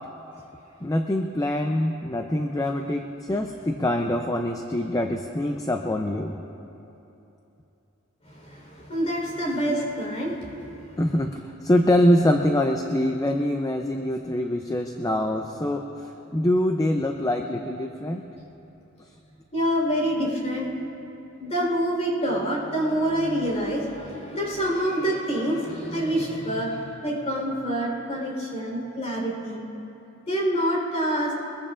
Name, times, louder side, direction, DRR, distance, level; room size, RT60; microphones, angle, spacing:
voice 1, 0.8-6.4 11.0-18.2, left 1 dB, 15° left, 4 dB, 0.5 m, -24 dB
voice 2, 8.3-10.5 19.5-20.7 21.4-29.6 30.3-31.3, equal, 30° left, -2 dB, 3.9 m, -26 dB
23.0 x 21.5 x 2.5 m, 2.9 s
head